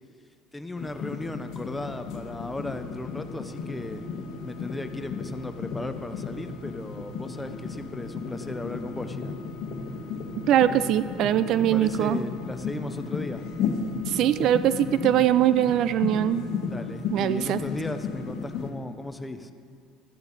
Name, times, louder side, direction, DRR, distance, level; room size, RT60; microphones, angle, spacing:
voice 1, 0.5-4.0 4.4-9.4 11.6-13.4 16.6-19.5, left 2 dB, 10° left, 8 dB, 0.6 m, -36 dB
sound 1, 0.8-18.7, left 5 dB, 60° left, 1.3 m, -34 dB
voice 2, 10.5-12.2 14.1-16.5 17.1-17.6, right 11 dB, 60° right, 14 dB, 0.3 m, -22 dB
13.0 x 9.6 x 4.0 m, 2.1 s
cardioid pair, 120°, 0 cm